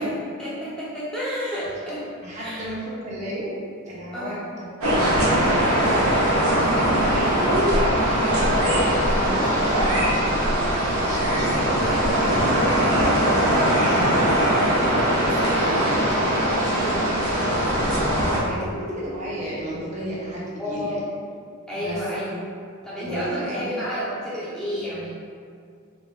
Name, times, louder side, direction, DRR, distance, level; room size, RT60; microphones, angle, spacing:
voice 1, 0.0-2.0 2.4-2.7 4.1-4.4 6.8-6.9 13.8-14.2 20.6-21.0 21.7-22.4 22.8-25.2, equal, 5° left, -10 dB, 0.6 m, -30 dB
voice 2, 2.2-3.5 3.8-5.9 6.1-12.9 13.7-14.4 14.8-17.9 18.4-21.0 21.8-22.0 23.0-23.6 24.9-25.1, right 1 dB, 35° right, -8 dB, 1.0 m, -34 dB
sound 1, 4.8-18.4, equal, 90° right, 1.1 m, -21 dB
4.2 x 3.5 x 2.3 m, 2.2 s
head